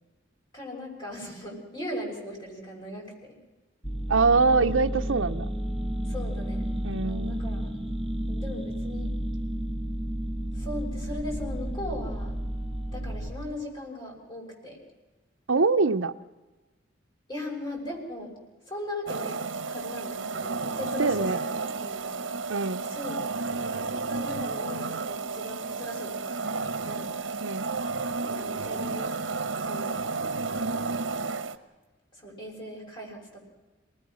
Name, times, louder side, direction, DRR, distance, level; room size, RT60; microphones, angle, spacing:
voice 1, 0.5-3.4 6.1-6.7 7.0-7.7 8.3-9.1 10.5-12.3 12.9-14.8 17.3-18.3 18.7-21.5 21.8-22.2 22.9-23.3 23.6-27.1 28.2-30.0 30.5-31.0 32.1-33.4, left 1 dB, 25° left, -1 dB, 6.5 m, -39 dB
sound 1, 3.8-13.3, equal, ahead, 1.9 m, -32 dB
voice 2, 4.1-5.5 6.8-7.4 15.5-16.1 21.0-21.4 22.5-22.9 27.4-27.7, right 4 dB, 90° right, 8 dB, 0.8 m, -24 dB
sound 2, 19.1-31.6, right 4 dB, 75° right, 1.2 m, -32 dB
28.0 x 19.5 x 6.4 m, 1.2 s
head